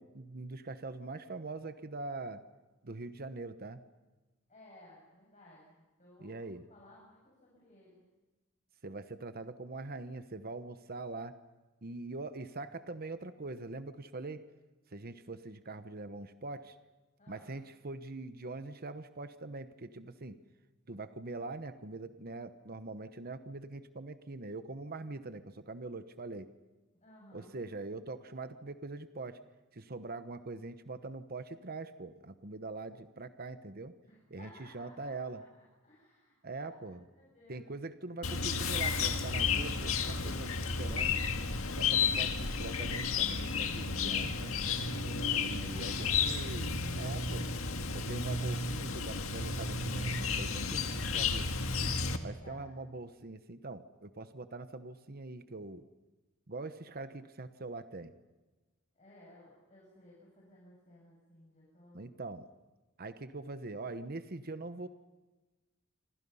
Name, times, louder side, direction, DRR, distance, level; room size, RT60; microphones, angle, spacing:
voice 1, 0.0-2.4 2.8-3.8 6.2-6.6 8.8-11.3 11.8-14.4 14.9-16.8 17.3-20.3 20.9-26.5 27.3-29.4 29.7-33.9 34.3-35.4 36.4-37.0 37.5-41.2 41.7-44.6 45.4-47.5 47.9-51.5 52.2-55.9 56.5-58.1 61.9-62.5 63.0-64.9, right 3 dB, 45° right, 10 dB, 1.1 m, -43 dB
voice 2, 4.5-6.4 6.7-8.1 17.2-17.5 26.9-27.5 34.0-35.5 35.8-36.8 37.1-37.7 45.6-46.3 52.2-52.7 58.9-62.1, left 1 dB, 35° left, -4 dB, 7.3 m, -58 dB
Chirp tweet, 38.2-52.2, left 5 dB, 80° left, 1.9 m, -32 dB
27.0 x 26.0 x 5.6 m, 1.2 s
head